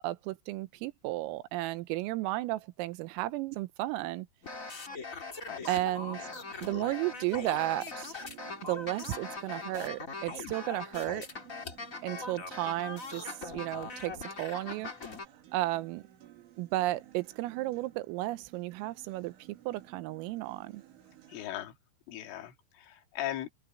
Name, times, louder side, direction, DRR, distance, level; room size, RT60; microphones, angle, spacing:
voice 1, 0.0-4.3 5.7-6.3 6.6-8.2 8.6-11.3 12.0-14.9 15.5-16.0 16.6-19.3 19.7-20.8, right 17 dB, 85° right, 3.5 m, -33 dB
sound 1, 4.4-15.3, left 3 dB, 45° left, 1.0 m, -41 dB
voice 2, 5.5-5.8 6.2-6.4 21.3-21.8 22.1-23.5, left 12 dB, 70° left, 4.4 m, -39 dB
Acoustic guitar, 5.5-21.5, right 12 dB, 70° right, 4.9 m, -57 dB
open air
omnidirectional pair, 6.0 m